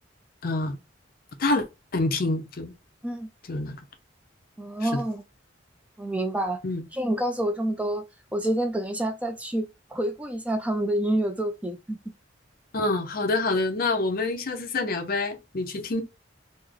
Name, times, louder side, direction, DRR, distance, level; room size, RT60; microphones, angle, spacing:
voice 1, 0.4-0.8 1.4-1.7 1.9-2.7 3.5-3.8 4.8-5.0 6.6-6.8 12.7-16.0, left 2 dB, 50° left, 0.6 m, -26 dB
voice 2, 4.6-5.2 6.0-6.6 6.9-8.0 8.3-9.7 9.9-12.0, right 1 dB, 5° right, 0.3 m, -27 dB
3.1 x 2.0 x 3.6 m
head